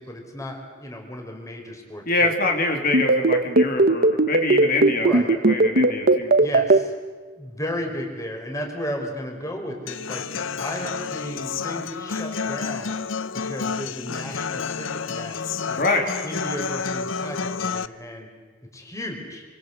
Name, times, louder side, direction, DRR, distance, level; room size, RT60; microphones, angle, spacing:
voice 1, 0.0-2.3 4.9-5.3 6.4-6.9 7.3-10.2 10.6-12.9 13.5-15.9 16.2-18.3 18.7-19.4, equal, 15° left, 2 dB, 4.5 m, -34 dB
voice 2, 2.1-5.1 5.5-6.3 15.8-16.1, left 2 dB, 50° left, 3 dB, 3.1 m, -24 dB
sound 1, 2.9-6.8, right 2 dB, 50° right, 1.2 m, -16 dB
Human voice / Acoustic guitar, 9.9-17.9, left 5 dB, 85° left, 0.8 m, -30 dB
27.0 x 24.5 x 8.1 m, 1.5 s
head